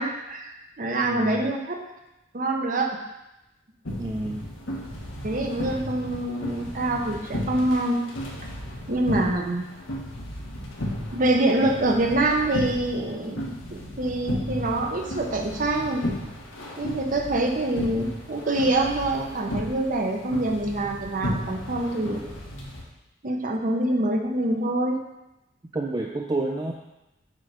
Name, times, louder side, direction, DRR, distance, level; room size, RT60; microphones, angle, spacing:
voice 1, 0.0-1.8 2.3-3.0 5.2-8.0 8.9-9.7 11.1-16.1 16.8-22.4 23.2-25.0, right 2 dB, 45° right, 2 dB, 0.8 m, -25 dB
voice 2, 1.0-1.5 4.0-4.4 25.7-26.7, right 2 dB, 20° right, 0 dB, 0.4 m, -29 dB
sound 1, 3.9-22.8, equal, 90° left, 1.5 m, -34 dB
7.5 x 3.3 x 4.9 m, 0.95 s
head